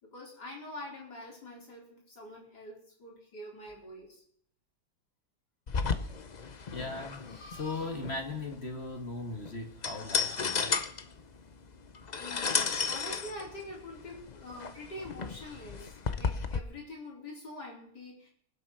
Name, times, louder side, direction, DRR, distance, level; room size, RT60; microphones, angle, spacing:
voice 1, 0.0-4.2 12.2-15.9 16.2-18.3, left 1 dB, 60° left, 5.1 m, -45 dB
sound 1, 5.7-16.6, left 5 dB, 75° left, 0.4 m, -34 dB
voice 2, 6.7-10.8, left 3 dB, 35° left, 2.0 m, -38 dB
23.0 x 7.8 x 5.7 m
omnidirectional pair, 2.0 m